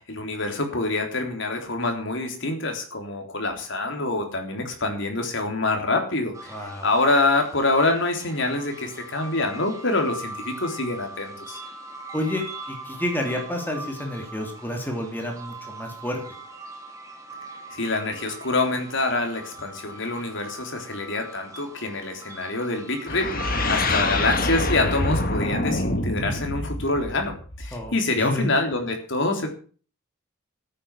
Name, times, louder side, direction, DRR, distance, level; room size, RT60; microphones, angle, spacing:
voice 1, 0.0-6.5 6.8-11.6 17.7-29.5, left 2 dB, 60° left, 4 dB, 3.7 m, -26 dB
sound 1, 6.3-23.9, right 2 dB, 15° right, 2.8 m, -41 dB
voice 2, 6.5-6.9 12.1-16.2 27.7-28.5, left 1 dB, 10° left, 2 dB, 3.1 m, -30 dB
sound 2, 23.1-27.9, left 2 dB, 45° left, 1.8 m, -26 dB
13.5 x 9.5 x 7.3 m, 0.41 s
head